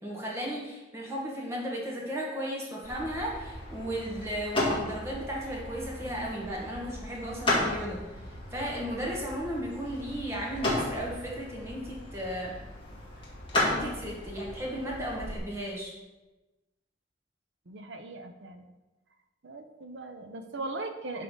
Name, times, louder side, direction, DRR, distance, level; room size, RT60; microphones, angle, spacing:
voice 1, 0.0-12.5 13.5-15.9, equal, 15° right, -4 dB, 1.6 m, -35 dB
sound 1, 2.8-15.4, left 1 dB, 30° left, 1.7 m, -34 dB
voice 2, 17.7-18.7 19.4-21.2, right 2 dB, 65° right, 7 dB, 0.7 m, -39 dB
11.0 x 3.7 x 3.8 m, 1.1 s
head